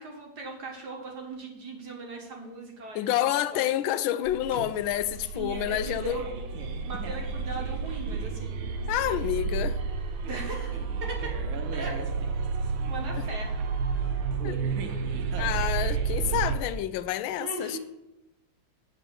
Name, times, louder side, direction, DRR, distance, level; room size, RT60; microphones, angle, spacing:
voice 1, 0.0-3.6 5.3-6.3 6.8-8.6 10.3-11.3 11.7-11.9 12.9-13.6 15.3-15.5 17.4-17.8, right 3 dB, 55° right, 1.9 m, -39 dB
voice 2, 2.9-6.2 8.9-9.8 13.1-13.2 14.4-14.6 15.4-17.8, left 12 dB, 80° left, 1.3 m, -28 dB
sound 1, 4.3-16.6, right 5 dB, 75° right, 1.6 m, -31 dB
8.1 x 5.5 x 6.4 m
omnidirectional pair, 2.2 m